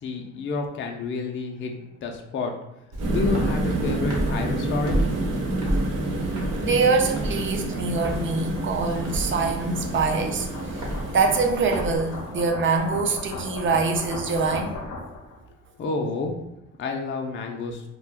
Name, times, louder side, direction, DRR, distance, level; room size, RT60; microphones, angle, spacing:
voice 1, 0.0-2.5 3.1-5.1 15.8-16.4 16.8-17.8, left 3 dB, 40° left, 2 dB, 0.4 m, -29 dB
Walk footsteps, 2.9-12.0, right 1 dB, 60° right, 1.0 m, -31 dB
sound 1, 3.0-12.3, right 2 dB, 90° right, 0.7 m, -29 dB
sound 2, 5.4-15.4, left 3 dB, 80° left, 0.6 m, -39 dB
voice 2, 6.6-10.5 11.1-14.8, right 4 dB, 40° right, 4 dB, 0.5 m, -24 dB
2.3 x 2.2 x 3.4 m, 0.88 s
cardioid pair, 90°, 30 cm